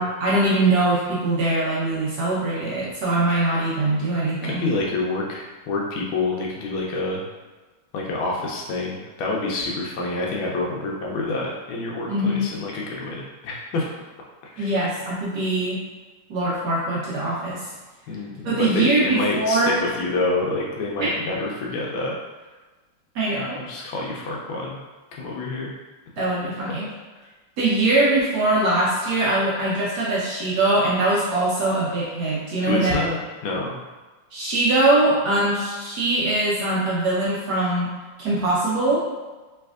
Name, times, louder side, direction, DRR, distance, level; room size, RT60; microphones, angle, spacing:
voice 1, 0.0-4.8 12.1-12.5 14.6-15.8 16.3-17.6 18.4-19.7 21.0-21.1 23.1-23.6 26.2-26.9 27.6-33.0 34.3-37.9 38.2-39.0, right 2 dB, 60° right, -8 dB, 1.2 m, -22 dB
voice 2, 4.4-7.2 7.9-13.9 14.5-14.9 18.1-22.2 23.4-24.8 25.1-25.7 27.2-27.3 32.7-33.8, left 2 dB, 75° left, -2 dB, 1.3 m, -27 dB
3.3 x 3.2 x 2.3 m, 1.3 s
omnidirectional pair, 2.3 m